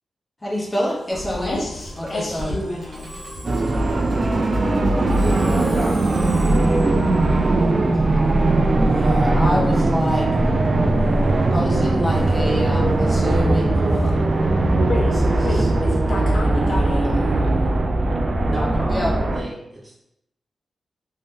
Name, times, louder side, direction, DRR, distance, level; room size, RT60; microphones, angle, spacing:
voice 1, 0.4-1.6 2.0-2.6 4.8-5.1 7.8-10.6 11.4-15.7 18.9-19.1, equal, 20° left, -3 dB, 0.7 m, -28 dB
Musical instrument, 1.1-8.4, equal, 60° right, 0.8 m, -36 dB
voice 2, 1.5-3.2 14.9-15.1 15.4-17.9, left 2 dB, 55° left, -1 dB, 0.5 m, -30 dB
sound 1, 3.4-19.4, right 2 dB, 40° right, 0.3 m, -19 dB
voice 3, 5.2-6.3 18.5-19.0 19.3-20.0, right 1 dB, 20° right, -4 dB, 0.9 m, -31 dB
2.7 x 2.2 x 3.5 m, 0.81 s
wide cardioid pair, 120°, 0 cm